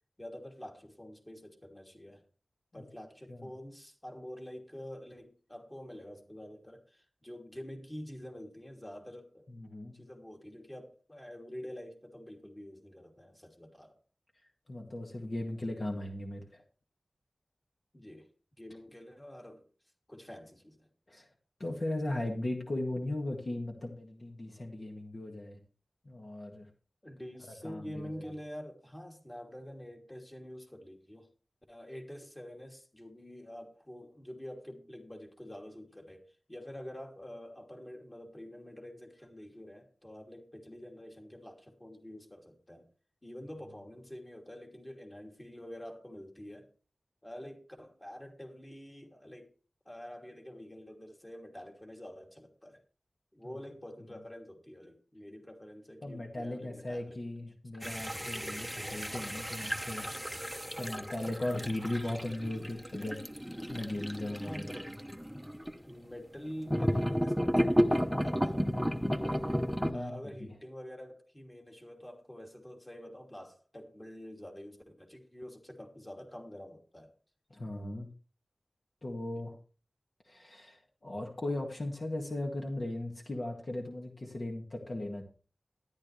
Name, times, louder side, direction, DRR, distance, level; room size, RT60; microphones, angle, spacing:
voice 1, 0.2-2.2 2.7-9.5 9.9-14.0 17.9-18.3 18.6-19.6 20.1-21.2 27.0-31.3 31.7-42.9 43.2-46.7 47.2-49.5 49.8-52.8 53.3-57.2 64.3-65.0 65.9-68.7 69.9-77.1 79.3-79.4, equal, 20° left, 2.8 m, -47 dB
voice 2, 9.5-9.9 14.7-16.6 21.1-21.3 21.6-25.6 26.1-26.7 27.6-27.8 56.0-60.1 60.8-63.2 63.7-64.7 69.4-70.1 77.5-78.1 79.0-79.6 80.3-85.2, left 1 dB, 50° left, 2.0 m, -37 dB
sound 1, 57.8-65.8 66.7-69.9, equal, ahead, 1.0 m, -33 dB
13.0 x 11.0 x 3.3 m
wide cardioid pair, 75°, 0 cm